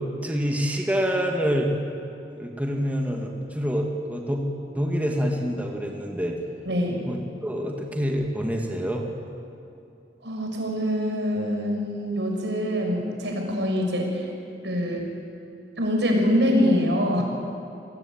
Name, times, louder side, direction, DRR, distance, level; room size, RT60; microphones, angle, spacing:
voice 1, 0.2-1.7 2.4-4.5 4.7-6.4 7.1-9.1, equal, 10° right, 1 dB, 2.3 m, -26 dB
voice 2, 6.7-7.0 10.2-14.2 14.6-15.0 15.8-17.2, equal, 85° right, 1 dB, 6.3 m, -24 dB
28.5 x 19.0 x 9.0 m, 2.8 s
head